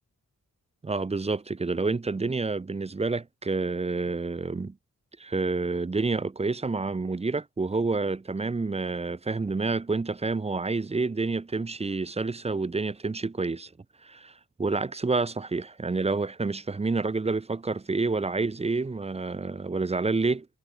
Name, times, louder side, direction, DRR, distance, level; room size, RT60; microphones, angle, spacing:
voice 1, 0.8-4.8 5.2-13.7 14.0-14.3 14.6-20.5, right 3 dB, 20° right, 0.5 m, -28 dB
wide cardioid pair, 95°, 34 cm